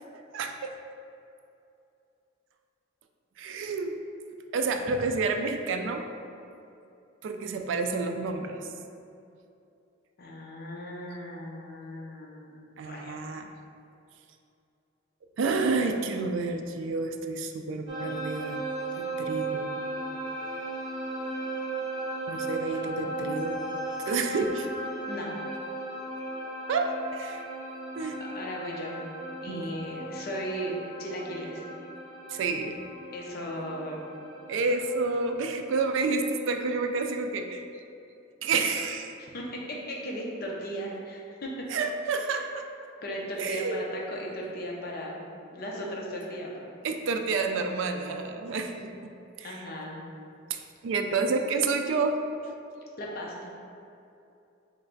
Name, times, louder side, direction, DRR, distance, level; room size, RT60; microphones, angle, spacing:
voice 1, 0.3-0.7 3.4-4.0 4.5-6.0 7.2-8.7 12.8-13.5 15.4-18.7 19.0-19.7 22.3-23.6 24.0-24.7 26.7-27.5 28.0-28.2 29.5-29.7 32.3-32.8 34.5-37.6 38.4-39.1 41.7-42.7 43.4-43.8 46.8-49.1 49.4-49.6 50.5-52.2, right 4 dB, 70° right, 5 dB, 0.3 m, -29 dB
voice 2, 10.2-13.2 25.1-25.3 28.3-29.0 29.4-31.6 33.1-34.0 39.3-41.5 43.0-45.2 45.5-46.7 49.4-50.0 53.0-53.5, equal, 50° left, -2 dB, 0.6 m, -37 dB
sound 1, 17.9-35.3, right 2 dB, 25° right, 0.8 m, -36 dB
3.3 x 3.2 x 3.9 m, 2.6 s
head